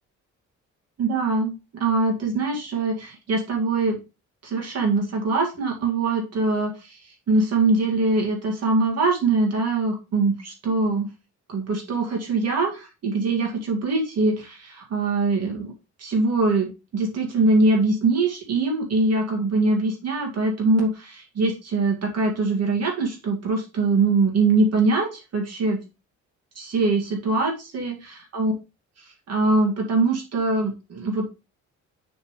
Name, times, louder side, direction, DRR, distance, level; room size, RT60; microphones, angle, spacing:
voice 1, 1.0-1.5 1.8-4.0 4.4-11.1 11.5-15.7 16.0-25.8 26.6-27.9 28.3-28.5 29.0-31.3, right 3 dB, 55° right, 0 dB, 2.3 m, -23 dB
7.0 x 4.3 x 3.2 m, 0.30 s
cardioid pair, 90°, 30 cm